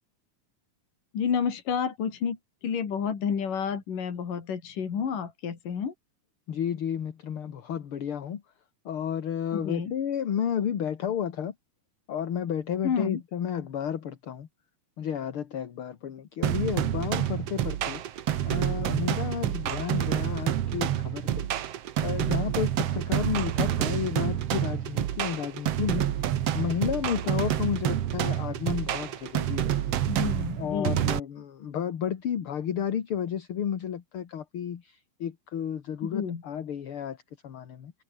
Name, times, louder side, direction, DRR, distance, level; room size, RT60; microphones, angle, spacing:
voice 1, 1.1-2.4 2.6-5.9 9.5-9.9 12.8-13.2 30.1-31.0 36.1-36.4, left 7 dB, 70° left, 4.8 m, -30 dB
voice 2, 6.5-8.4 8.9-11.5 12.1-14.5 15.0-21.5 22.0-30.1 30.6-37.9, left 8 dB, 50° left, 2.1 m, -32 dB
sound 1, 16.4-31.2, right 11 dB, 60° right, 1.8 m, -28 dB
omnidirectional pair, 4.0 m